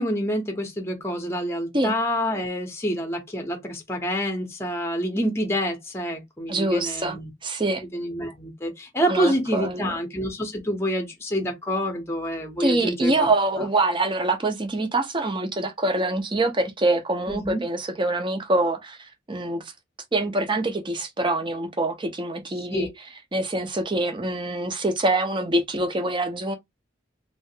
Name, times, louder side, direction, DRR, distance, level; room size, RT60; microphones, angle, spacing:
voice 1, 0.0-7.3 7.9-13.3 13.6-13.7 17.3-17.6 22.7-22.9, equal, 15° left, 0.7 m, -27 dB
voice 2, 6.5-7.8 9.1-9.9 12.6-19.7 20.1-22.9 23.3-26.6, right 2 dB, 25° right, 0.6 m, -25 dB
3.2 x 2.4 x 2.7 m
head